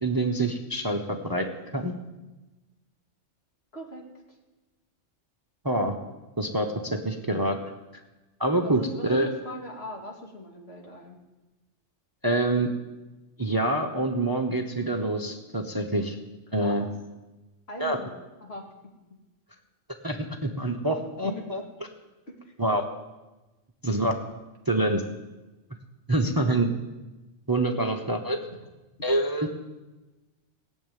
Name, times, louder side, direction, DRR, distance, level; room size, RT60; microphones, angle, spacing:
voice 1, 0.0-1.5 1.7-1.9 5.6-6.0 6.4-7.6 8.4-9.3 12.2-12.7 13.4-16.2 16.5-16.8 17.8-18.0 20.0-21.6 22.6-22.8 23.8-24.1 24.7-25.0 26.1-26.7 27.5-28.4 29.0-29.5, right 1 dB, 20° right, 4 dB, 0.9 m, -26 dB
voice 2, 3.7-4.0 8.6-11.2 16.6-16.9 17.7-18.1 18.4-18.6 21.2-21.6 22.3-22.5 26.2-26.5, equal, 55° left, -1 dB, 2.8 m, -40 dB
18.0 x 7.4 x 9.1 m, 1.1 s
omnidirectional pair, 1.3 m